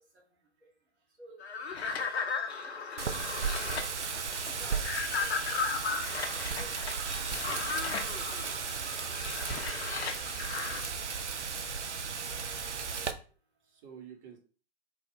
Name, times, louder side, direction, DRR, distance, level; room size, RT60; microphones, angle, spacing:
voice 1, 0.6-1.1 13.1-14.4, right 8 dB, 30° right, 0.8 m, -55 dB
sound 1, 1.4-10.9, left 5 dB, 65° left, 0.6 m, -36 dB
voice 2, 2.6-3.8 4.5-4.8 5.2-6.8 7.3-8.0 8.3-8.4 8.9-9.0 9.3-9.6, right 1 dB, 70° right, 1.4 m, -54 dB
Wind, 3.0-13.1, right 6 dB, 85° right, 0.5 m, -35 dB
sound 2, 7.3-7.5 8.0-13.3, left 1 dB, 20° left, 0.9 m, -50 dB
3.1 x 2.3 x 3.4 m
figure-of-eight pair, 115°, 34 cm